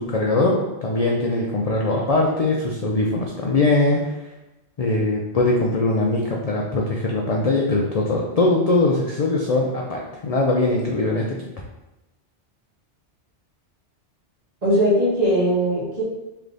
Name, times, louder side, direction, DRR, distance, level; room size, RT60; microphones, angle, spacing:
voice 1, 0.0-4.1 4.8-11.4, left 2 dB, 50° left, -2 dB, 0.4 m, -21 dB
voice 2, 14.6-16.0, equal, 35° right, -6 dB, 1.3 m, -19 dB
3.4 x 3.3 x 3.8 m, 0.99 s
omnidirectional pair, 1.2 m